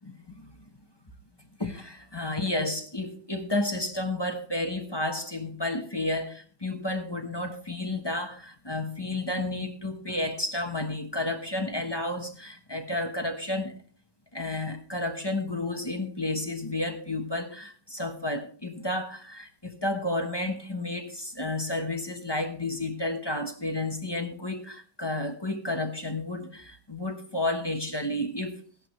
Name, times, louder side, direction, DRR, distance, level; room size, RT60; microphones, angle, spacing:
voice 1, 1.6-13.8 14.3-28.6, left 2 dB, 20° left, 1.0 m, -31 dB
16.0 x 11.0 x 3.1 m
omnidirectional pair, 1.5 m